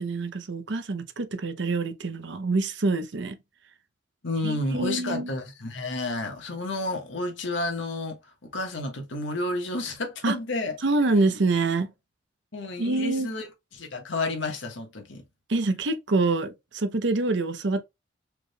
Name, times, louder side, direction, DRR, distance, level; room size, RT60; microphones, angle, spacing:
voice 1, 0.0-3.4 4.4-5.3 10.2-10.4 10.8-11.9 12.8-13.3 15.5-17.8, right 3 dB, 65° right, 0.7 m, -26 dB
voice 2, 4.2-10.8 11.2-11.3 12.5-13.5 13.7-15.2, left 2 dB, 70° left, 1.3 m, -31 dB
4.8 x 3.4 x 2.2 m
head